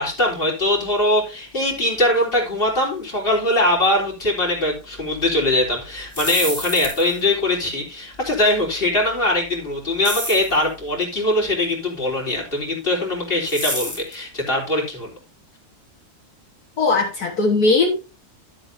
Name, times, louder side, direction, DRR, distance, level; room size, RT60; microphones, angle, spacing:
voice 1, 0.0-15.1, left 1 dB, 35° left, -1 dB, 3.9 m, -21 dB
sound 1, 6.0-7.2 10.0-10.6 13.4-14.1, left 1 dB, 10° left, 3.4 m, -28 dB
voice 2, 16.8-17.9, left 3 dB, 70° left, 0 dB, 2.1 m, -18 dB
12.5 x 7.7 x 2.8 m, 0.33 s
omnidirectional pair, 1.7 m